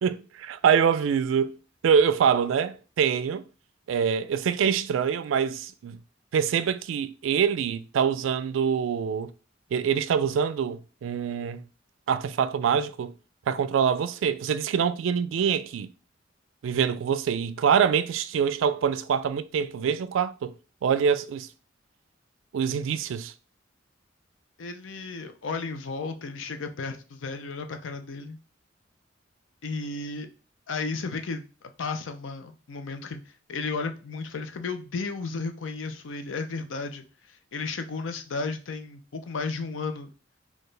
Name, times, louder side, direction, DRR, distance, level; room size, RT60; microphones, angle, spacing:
voice 1, 0.0-1.5 1.8-3.4 3.9-6.0 6.3-9.3 9.7-11.6 12.1-13.1 13.5-15.9 16.6-20.5 20.8-21.5 22.5-23.3, right 7 dB, 85° right, 0.3 m, -25 dB
voice 2, 24.6-28.4 29.6-30.3 30.7-31.4 31.8-33.2 33.5-40.1, left 4 dB, 80° left, 0.5 m, -33 dB
4.2 x 2.4 x 3.2 m
head